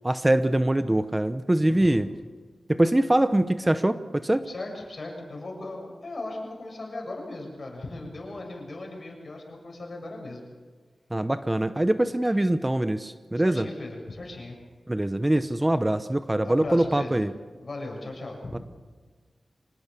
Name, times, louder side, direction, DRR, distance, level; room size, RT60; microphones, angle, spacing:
voice 1, 0.0-2.1 2.7-4.5 11.1-13.7 14.9-17.3 18.5-18.6, right 1 dB, 15° right, 11 dB, 0.8 m, -23 dB
voice 2, 1.7-2.0 4.4-10.5 13.3-14.6 16.4-17.3 17.6-18.6, left 2 dB, 50° left, 0 dB, 7.0 m, -38 dB
25.5 x 19.0 x 6.9 m, 1.4 s
wide cardioid pair, 70°, 0 cm